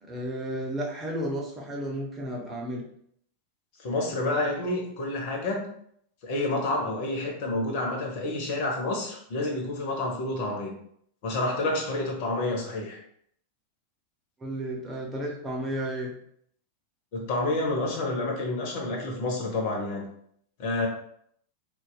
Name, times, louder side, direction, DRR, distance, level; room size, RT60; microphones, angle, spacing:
voice 1, 0.0-2.8 14.4-16.1, right 1 dB, 20° right, -1 dB, 0.8 m, -33 dB
voice 2, 3.8-5.7 6.2-10.7 11.2-13.0 17.1-20.0 20.6-20.9, left 2 dB, 45° left, 0 dB, 0.8 m, -29 dB
4.0 x 2.3 x 2.3 m, 0.67 s
figure-of-eight pair, 90°, 0 cm